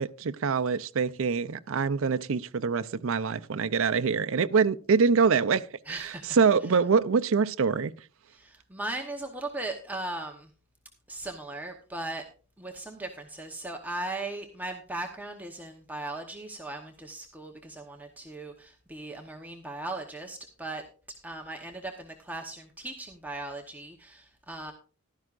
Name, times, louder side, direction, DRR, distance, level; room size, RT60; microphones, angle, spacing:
voice 1, 0.0-7.9, right 5 dB, 65° right, 0.5 m, -25 dB
voice 2, 5.9-6.4 8.3-10.5 11.1-12.3 12.6-20.8 21.2-24.7, right 2 dB, 10° right, 1.0 m, -38 dB
15.5 x 12.0 x 2.5 m
head